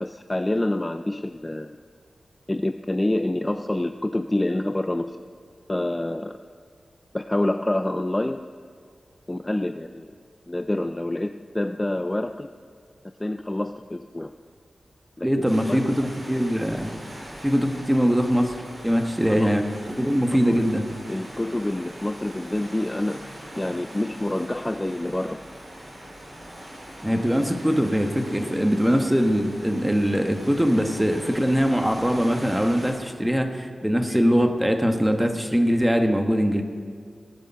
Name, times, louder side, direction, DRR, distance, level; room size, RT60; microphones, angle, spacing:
voice 1, 0.0-1.8 2.5-5.2 5.7-6.3 7.1-8.5 9.3-10.1 10.5-12.5 13.2-14.3 15.2-15.3 15.7-16.1 19.3-19.5 20.3-20.7 21.1-23.2 23.6-25.4 27.4-27.5, left 1 dB, 20° left, 8 dB, 0.4 m, -27 dB
voice 2, 15.2-16.9 17.4-18.5 18.8-20.9 27.0-36.6, equal, 5° right, 5 dB, 1.3 m, -22 dB
sound 1, 15.4-32.9, right 1 dB, 45° right, 3.9 m, -41 dB
18.5 x 8.1 x 5.7 m, 2.2 s
wide cardioid pair, 75°, 0 cm